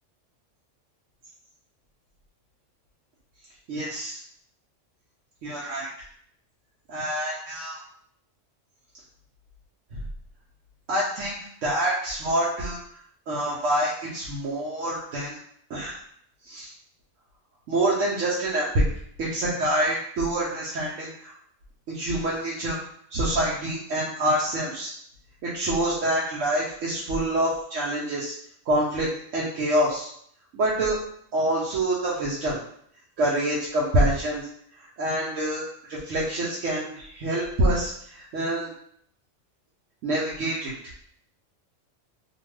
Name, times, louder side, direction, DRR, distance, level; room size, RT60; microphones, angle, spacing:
voice 1, 3.7-4.2 5.4-5.9 6.9-7.8 9.9-10.0 10.9-11.4 11.6-12.8 13.3-15.4 15.7-16.0 16.4-16.7 17.7-18.8 19.2-21.3 21.9-22.8 23.1-24.9 25.4-28.3 28.7-29.1 29.3-30.1 30.5-31.0 31.3-32.6 33.2-34.4 35.0-38.7 40.0-40.7, right 1 dB, 85° right, -6 dB, 1.0 m, -26 dB
2.8 x 2.2 x 3.1 m, 0.66 s
omnidirectional pair, 1.3 m